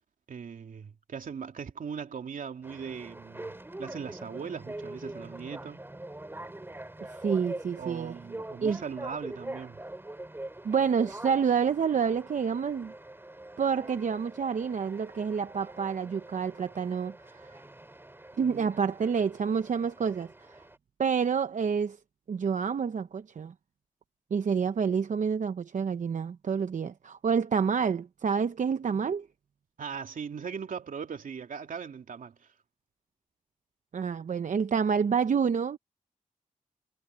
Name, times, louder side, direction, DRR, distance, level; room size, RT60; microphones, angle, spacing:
voice 1, 0.3-3.5 3.8-5.8 7.8-9.8 18.4-18.8 29.8-32.5, right 6 dB, 80° right, 2.9 m, -39 dB
sound 1, 2.6-20.8, right 1 dB, 15° right, 4.2 m, -44 dB
voice 2, 7.2-8.1 8.6-8.8 10.6-12.9 13.6-17.6 18.4-20.6 21.0-22.0 22.3-23.5 24.3-29.3 33.9-35.8, right 6 dB, 65° right, 0.8 m, -28 dB
wide cardioid pair, 105°, 14 cm